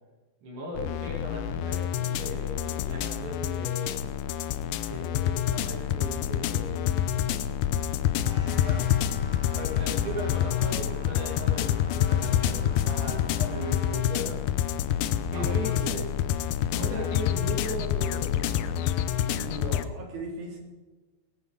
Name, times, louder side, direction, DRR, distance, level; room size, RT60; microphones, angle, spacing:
voice 1, 0.4-4.1 4.8-7.2 8.6-8.9 9.5-13.5 14.1-14.4 15.3-16.0 16.8-18.7, equal, 85° right, -2 dB, 4.8 m, -38 dB
sound 1, 0.7-19.8, left 10 dB, 85° left, 2.1 m, -27 dB
sound 2, 8.2-14.0, left 1 dB, 40° right, 5.1 m, -47 dB
voice 2, 12.9-14.1 15.3-16.1 16.9-17.1 19.2-20.6, right 2 dB, 60° right, 0 dB, 4.5 m, -39 dB
20.0 x 9.6 x 5.1 m, 1.2 s
omnidirectional pair, 5.0 m